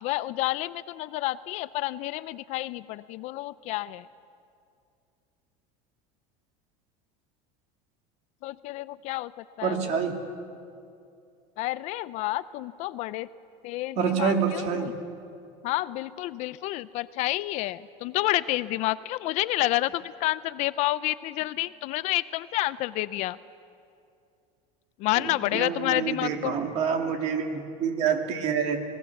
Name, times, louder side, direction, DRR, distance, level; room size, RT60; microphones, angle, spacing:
voice 1, 0.0-4.1 8.4-9.3 9.6-9.9 11.6-13.3 13.6-14.9 15.6-23.4 25.0-26.6, left 17 dB, 45° left, 16 dB, 0.4 m, -29 dB
voice 2, 9.6-10.1 14.0-14.9 25.2-28.8, right 6 dB, 45° right, 4 dB, 2.4 m, -27 dB
26.5 x 19.5 x 7.1 m, 2.5 s
cardioid pair, 160°, 16 cm